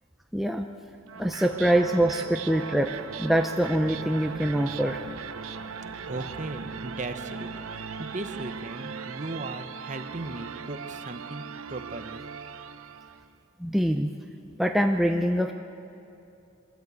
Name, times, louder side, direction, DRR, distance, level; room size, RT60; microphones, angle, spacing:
voice 1, 0.3-0.7 1.2-5.0 13.6-14.1 14.6-15.5, right 1 dB, ahead, 3 dB, 0.5 m, -24 dB
sound 1, 1.1-13.3, right 5 dB, 85° right, 0.8 m, -39 dB
voice 2, 6.1-12.2, right 2 dB, 35° right, 8 dB, 0.9 m, -37 dB
23.5 x 14.0 x 8.2 m, 2.7 s
head